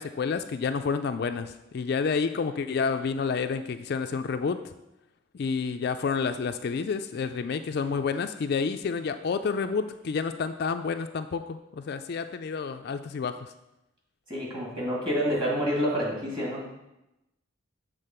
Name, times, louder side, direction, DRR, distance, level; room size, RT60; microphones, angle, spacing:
voice 1, 0.0-4.7 5.3-13.5, left 5 dB, 50° left, 8 dB, 0.3 m, -29 dB
voice 2, 14.3-16.6, equal, 25° right, -4 dB, 2.3 m, -28 dB
7.5 x 3.8 x 6.6 m, 0.92 s
head